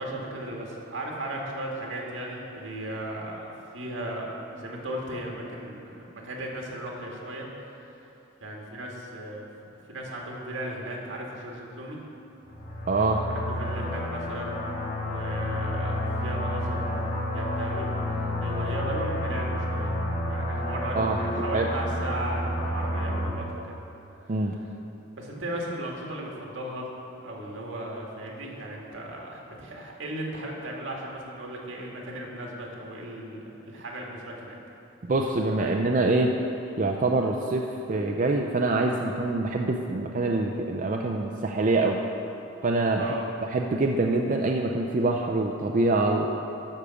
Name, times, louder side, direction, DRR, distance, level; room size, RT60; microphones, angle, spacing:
voice 1, 0.0-8.0 8.4-9.5 9.9-12.0 13.3-14.6 15.0-17.9 18.4-19.9 20.3-23.8 25.2-26.9 27.2-33.4 33.7-34.6 42.9-43.2, right 1 dB, 80° right, -1 dB, 1.7 m, -36 dB
sound 1, 12.4-23.3, left 1 dB, 45° left, 1.7 m, -30 dB
voice 2, 12.9-13.2 20.9-21.2 21.5-21.7 24.3-24.6 35.0-36.3 36.8-42.0 42.6-43.1 43.4-46.3, right 2 dB, 40° right, 1 dB, 0.5 m, -25 dB
12.0 x 5.0 x 6.9 m, 2.9 s
head